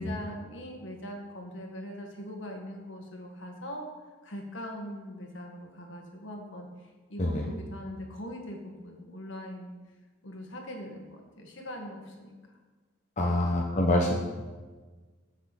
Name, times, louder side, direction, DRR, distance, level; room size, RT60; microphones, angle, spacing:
voice 1, 0.0-3.9 4.2-9.7 10.2-12.3 13.2-13.5, equal, 65° left, 1 dB, 1.7 m, -41 dB
voice 2, 7.2-7.5 13.2-14.1, left 1 dB, 35° left, -1 dB, 1.0 m, -26 dB
14.0 x 6.4 x 4.2 m, 1.3 s
head